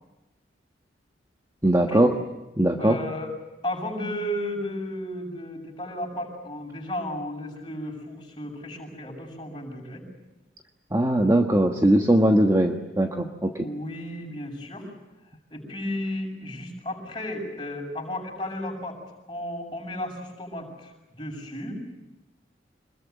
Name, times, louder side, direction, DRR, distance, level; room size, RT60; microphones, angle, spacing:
voice 1, 1.6-2.1 2.6-3.0 10.9-13.7, right 1 dB, 15° right, 3 dB, 1.3 m, -20 dB
voice 2, 2.8-3.3 3.6-10.0 13.6-14.9 15.5-19.0 19.3-21.8, left 1 dB, 25° left, 0 dB, 7.6 m, -34 dB
26.0 x 21.5 x 9.5 m, 0.98 s
head